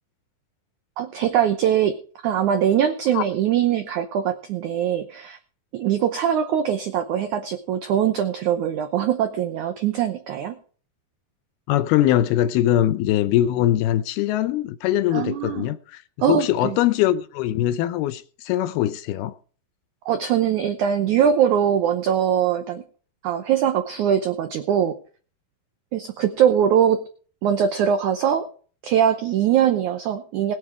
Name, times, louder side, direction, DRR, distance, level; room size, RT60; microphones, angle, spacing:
voice 1, 1.0-2.0 2.2-5.4 5.7-10.6 15.1-15.7 16.2-16.7 20.0-22.8 23.2-25.0 25.9-27.0 27.4-28.5 28.8-30.5, right 9 dB, 85° right, 1.7 m, -22 dB
voice 2, 11.7-16.0 16.3-19.4, left 13 dB, 80° left, 2.5 m, -22 dB
20.5 x 7.2 x 4.8 m
omnidirectional pair, 4.7 m